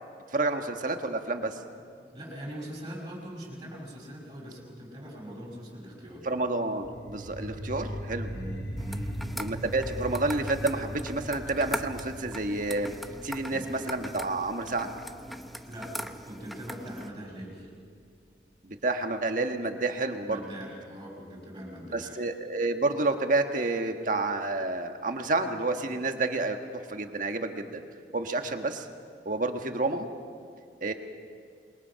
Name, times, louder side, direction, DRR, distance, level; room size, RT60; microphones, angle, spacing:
voice 1, 0.3-1.6 6.2-8.3 9.4-13.0 13.2-14.9 18.6-20.4 21.9-27.8 28.1-28.9 29.2-30.1 30.8-30.9, right 2 dB, 50° right, 5 dB, 1.5 m, -29 dB
voice 2, 2.0-6.3 8.3-9.2 13.5-13.6 15.6-17.7 20.2-22.2, equal, 25° right, -5 dB, 5.7 m, -42 dB
sound 1, 6.8-17.8, equal, 80° left, 6.9 m, -40 dB
sound 2, 8.8-17.1, equal, ahead, 0.8 m, -41 dB
27.5 x 22.0 x 5.8 m, 2.2 s
head